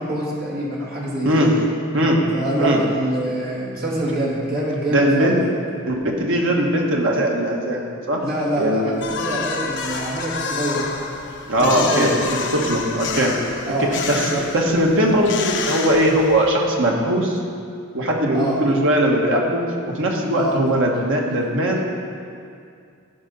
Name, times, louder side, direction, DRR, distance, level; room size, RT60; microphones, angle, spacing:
voice 1, 0.0-1.5 2.3-5.4 8.2-10.9 11.5-12.4 13.6-14.4 18.3-18.6 20.4-20.6, right 1 dB, 45° right, -6 dB, 2.7 m, -25 dB
voice 2, 4.9-5.4 5.8-8.2 8.5-9.0 11.5-12.1 12.5-13.3 13.8-17.4 17.9-19.6 19.9-21.9, right 1 dB, 60° right, 0 dB, 1.5 m, -20 dB
sound 1, 9.0-16.6, left 5 dB, 55° left, 0.9 m, -29 dB
13.0 x 5.5 x 5.4 m, 2.3 s
head